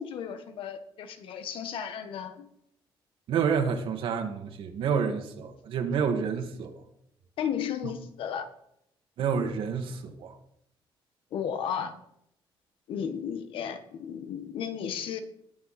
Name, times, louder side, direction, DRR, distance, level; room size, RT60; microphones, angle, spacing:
voice 1, 0.0-2.5 7.4-8.5 11.3-12.0 12.9-15.2, left 8 dB, 75° left, 1.5 m, -34 dB
voice 2, 3.3-6.8 9.2-10.4, right 6 dB, 75° right, 2.0 m, -29 dB
20.5 x 7.1 x 4.3 m
cardioid pair, 155°, 9 cm